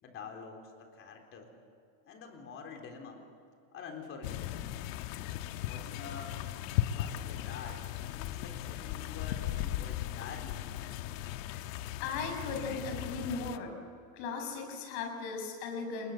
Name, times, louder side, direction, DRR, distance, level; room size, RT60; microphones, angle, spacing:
voice 1, 0.0-1.5 2.1-3.3 3.7-4.6 5.6-6.5 6.9-7.9 8.1-10.7, left 5 dB, 30° left, 3 dB, 3.9 m, -47 dB
sound 1, 4.2-13.6, left 12 dB, 80° left, 1.3 m, -37 dB
voice 2, 12.0-13.7 14.1-16.1, left 4 dB, 60° left, 3 dB, 7.0 m, -37 dB
28.5 x 21.5 x 7.9 m, 2.4 s
cardioid pair, 175°, 39 cm